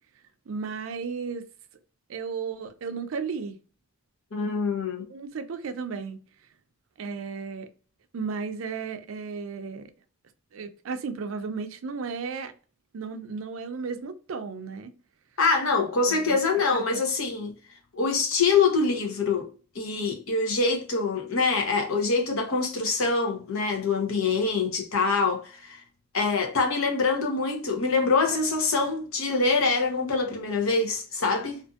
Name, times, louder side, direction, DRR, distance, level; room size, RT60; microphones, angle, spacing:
voice 1, 0.5-1.4 2.1-3.6 5.1-6.2 7.0-7.7 8.1-9.9 10.5-12.5 12.9-14.9 16.1-16.4 16.7-17.0, right 5 dB, 75° right, 0.4 m, -34 dB
voice 2, 4.3-5.1 15.4-17.5 17.9-19.5 19.7-25.8 26.1-31.6, left 4 dB, 85° left, 0.8 m, -25 dB
2.6 x 2.5 x 2.4 m
head